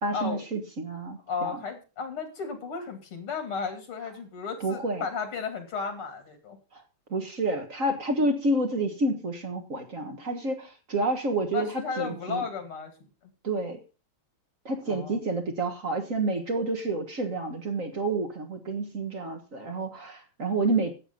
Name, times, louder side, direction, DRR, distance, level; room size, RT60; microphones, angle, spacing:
voice 1, 0.0-1.6 4.6-5.1 6.7-6.8 7.1-12.4 13.4-13.8 14.6-20.9, right 2 dB, 40° right, 4 dB, 1.7 m, -29 dB
voice 2, 1.3-6.6 11.5-12.9 13.2-13.3 14.9-15.2, left 5 dB, 80° left, 6 dB, 3.3 m, -34 dB
12.5 x 8.2 x 5.2 m, 0.33 s
omnidirectional pair, 2.4 m